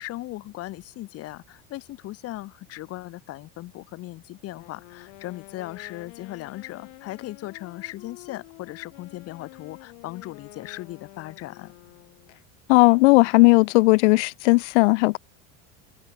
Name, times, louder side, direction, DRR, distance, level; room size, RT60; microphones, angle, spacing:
voice 1, 0.0-11.7, left 17 dB, 45° left, 5.1 m, -38 dB
Wind instrument woodwind instrument, 4.5-12.4, left 34 dB, 65° left, 3.7 m, -48 dB
voice 2, 12.7-15.2, left 25 dB, 80° left, 0.7 m, -17 dB
cardioid pair, 155°, 34 cm